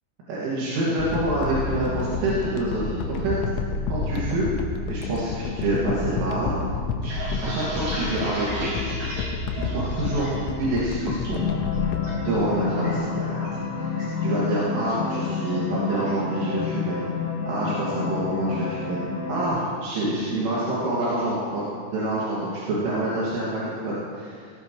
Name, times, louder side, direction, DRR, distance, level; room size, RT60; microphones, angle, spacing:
voice 1, 0.3-3.4 3.9-6.5 7.4-8.7 9.5-10.3 10.6-11.4 12.2-13.4 13.8-17.1 17.5-19.0 19.3-24.5, right 1 dB, 75° right, -8 dB, 4.7 m, -27 dB
sound 1, 1.0-13.2 13.7-13.8, left 4 dB, 85° left, 3.5 m, -30 dB
sound 2, 6.8-10.5 10.8-11.3 11.7-12.1 12.4-13.6 14.0-14.2 14.6-15.0, equal, 50° right, 6.3 m, -34 dB
sound 3, 11.3-19.5, left 5 dB, 65° left, 3.9 m, -29 dB
18.0 x 17.5 x 3.2 m, 2.2 s
omnidirectional pair, 5.9 m